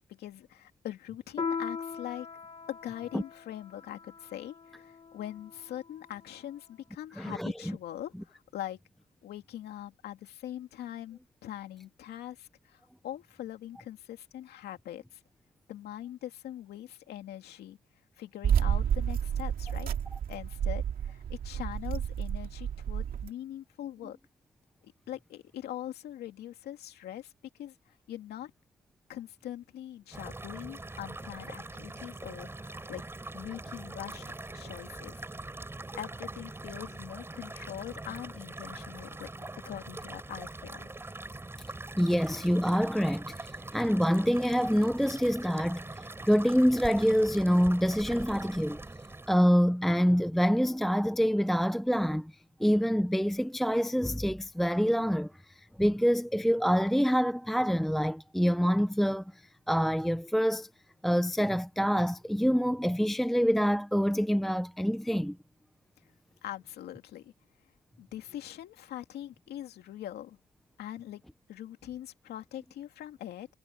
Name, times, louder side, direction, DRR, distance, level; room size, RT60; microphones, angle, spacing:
voice 1, 0.1-2.3 2.7-8.8 9.2-15.2 15.7-17.8 18.2-19.9 20.3-24.2 24.8-28.5 29.1-33.0 33.3-34.2 34.5-35.2 36.0-39.3 39.7-40.9 66.4-67.3 68.0-70.4 70.8-71.2 71.5-73.5, left 12 dB, 85° left, 2.5 m, -42 dB
Piano, 1.4-6.3, left 5 dB, 35° left, 1.3 m, -40 dB
voice 2, 7.2-7.8 42.0-45.9 46.2-48.8 49.3-52.3 52.6-55.3 55.8-59.2 59.7-60.7 61.0-65.4, equal, ahead, 0.5 m, -26 dB
sound 1, 18.4-23.3, right 9 dB, 60° right, 2.3 m, -30 dB
sound 2, 30.1-49.4, right 2 dB, 15° right, 7.0 m, -43 dB
cardioid pair, 110°, 16 cm